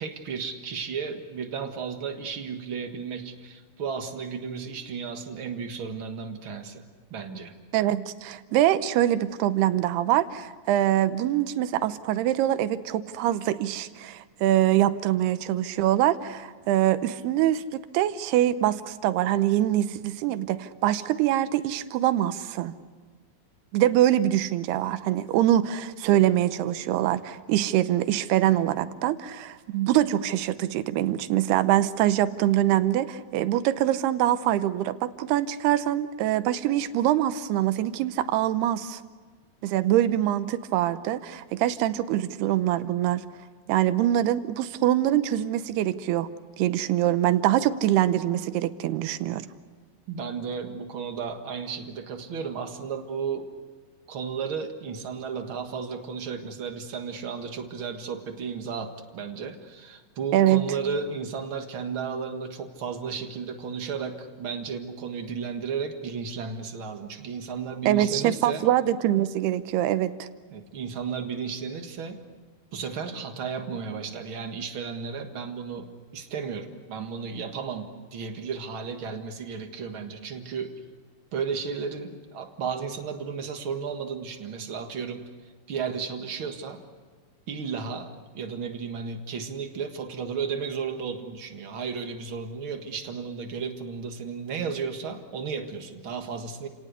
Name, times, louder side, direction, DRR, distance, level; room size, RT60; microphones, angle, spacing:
voice 1, 0.0-6.8 7.1-7.5 50.1-53.5 54.1-68.7 70.5-72.2 72.7-80.8 81.3-85.3 85.7-86.8 87.5-96.7, right 6 dB, 50° right, 5 dB, 1.6 m, -34 dB
voice 2, 7.7-22.7 23.7-39.0 39.6-43.2 43.7-46.3 46.6-49.5 60.3-60.6 67.9-70.3, right 13 dB, 85° right, 12 dB, 2.9 m, -24 dB
30.0 x 18.5 x 8.2 m, 1.5 s
omnidirectional pair, 4.5 m